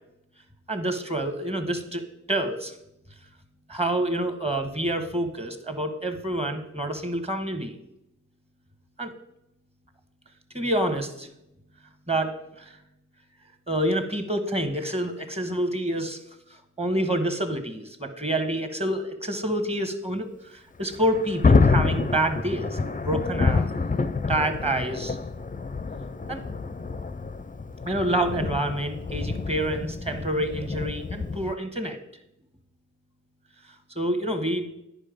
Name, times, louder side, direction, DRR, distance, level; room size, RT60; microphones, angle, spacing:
voice 1, 0.7-2.7 3.7-7.7 9.0-9.1 10.5-11.3 12.1-12.7 13.7-16.2 16.8-22.8 23.0-23.7 24.3-25.2 26.3-26.4 27.8-32.0 33.9-34.7, right 1 dB, 20° right, 7 dB, 1.3 m, -27 dB
Thunder, 20.8-31.5, left 4 dB, 25° left, 0.5 m, -27 dB
9.9 x 5.5 x 5.1 m, 0.83 s
wide cardioid pair, 50°, 31 cm